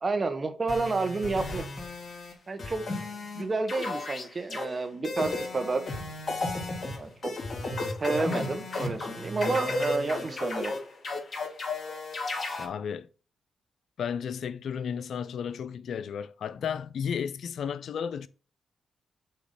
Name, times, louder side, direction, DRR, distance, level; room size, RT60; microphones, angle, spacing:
voice 1, 0.0-1.6 2.5-2.8 3.3-5.8 7.0-7.3 8.0-10.7, right 3 dB, 40° right, 1.2 m, -30 dB
sound 1, 0.7-2.3 2.6-3.4 3.7-4.6 5.0-12.7, left 2 dB, 45° left, 2.9 m, -33 dB
voice 2, 12.6-13.1 14.0-18.3, left 7 dB, 75° left, 0.4 m, -33 dB
6.7 x 2.9 x 5.5 m
supercardioid pair, 55°, 0 cm